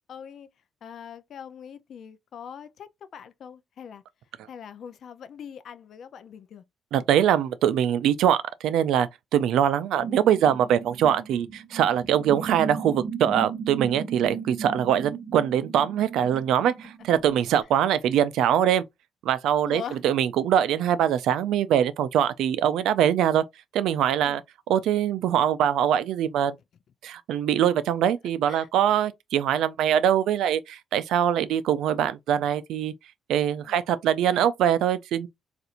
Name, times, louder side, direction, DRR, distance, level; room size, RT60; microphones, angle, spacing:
voice 1, 0.1-0.5 0.8-4.0 4.5-6.6 19.6-20.0 24.2-24.4 28.5-28.7 33.6-33.8, left 8 dB, 60° left, 0.5 m, -42 dB
voice 2, 6.9-18.8 19.2-23.4 23.7-24.4 24.7-26.6 27.0-32.9 33.3-35.3, right 10 dB, 85° right, 0.4 m, -23 dB
sound 1, 10.0-17.6, right 6 dB, 20° right, 1.1 m, -36 dB
4.2 x 2.5 x 2.5 m
cardioid pair, 130°, 0 cm